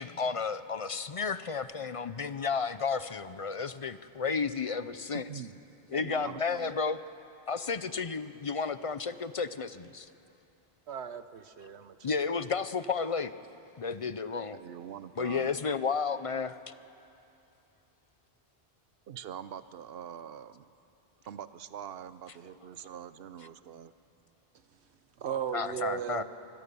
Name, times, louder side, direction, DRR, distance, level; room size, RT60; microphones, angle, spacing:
voice 1, 0.0-5.2 5.9-7.0 7.5-10.1 12.0-13.3 13.8-14.6 15.2-16.6 25.5-26.2, left 5 dB, 40° left, 13 dB, 0.6 m, -32 dB
voice 2, 5.3-5.6 5.9-6.7 14.5-15.5 19.1-20.7 21.2-23.9, right 9 dB, 65° right, 14 dB, 0.9 m, -44 dB
voice 3, 10.9-12.4 25.2-26.2, right 8 dB, 85° right, 12 dB, 1.2 m, -36 dB
25.5 x 21.0 x 6.9 m, 2.8 s
omnidirectional pair, 1.1 m